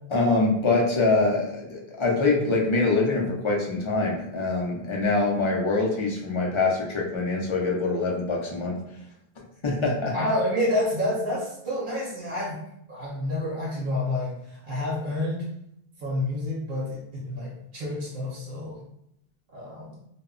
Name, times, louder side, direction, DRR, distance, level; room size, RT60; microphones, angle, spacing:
voice 1, 0.1-8.8 9.6-10.2, left 3 dB, 50° left, -2 dB, 0.3 m, -24 dB
voice 2, 10.1-12.6 12.9-15.5 16.0-17.0 17.3-18.8 19.5-20.0, left 1 dB, 60° right, -5 dB, 0.8 m, -28 dB
2.1 x 2.0 x 3.6 m, 0.76 s
omnidirectional pair, 1.0 m